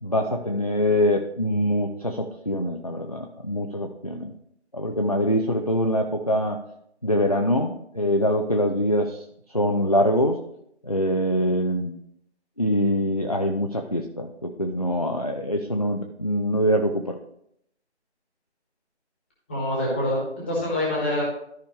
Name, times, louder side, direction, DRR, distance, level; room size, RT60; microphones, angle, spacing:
voice 1, 0.0-4.3 4.7-6.6 7.0-9.2 9.5-10.4 10.8-11.9 12.6-17.2, equal, 35° left, 3 dB, 0.5 m, -24 dB
voice 2, 19.5-21.2, left 1 dB, 10° left, -5 dB, 1.4 m, -25 dB
13.5 x 5.1 x 3.1 m, 0.73 s
figure-of-eight pair, 165°, 35 cm